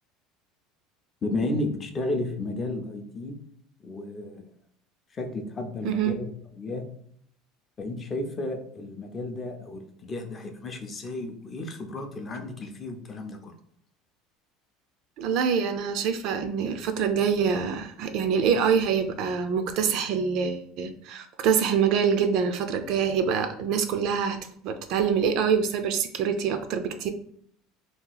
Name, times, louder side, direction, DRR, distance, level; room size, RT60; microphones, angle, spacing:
voice 1, 1.2-3.4 3.8-4.5 5.1-6.3 6.5-6.9 7.8-13.5, left 2 dB, 25° left, 4 dB, 0.5 m, -33 dB
voice 2, 15.2-24.4 24.6-27.1, right 7 dB, 55° right, 8 dB, 0.4 m, -25 dB
2.8 x 2.3 x 3.8 m, 0.64 s
cardioid pair, 155°, 0 cm